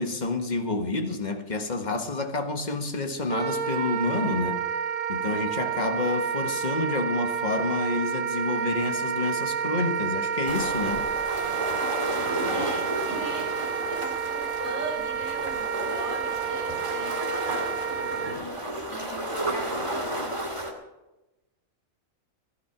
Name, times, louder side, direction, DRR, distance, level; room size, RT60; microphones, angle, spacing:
voice 1, 0.0-4.6 5.1-11.1, left 3 dB, 35° left, 1.6 m, -29 dB
Wind instrument woodwind instrument, 3.3-18.4, right 7 dB, 85° right, 1.6 m, -30 dB
sound 1, 10.5-20.7, right 1 dB, 20° right, 2.3 m, -32 dB
voice 2, 12.3-17.7 18.1-20.3, right 1 dB, 20° left, 5.1 m, -39 dB
16.0 x 12.5 x 5.9 m
omnidirectional pair, 1.4 m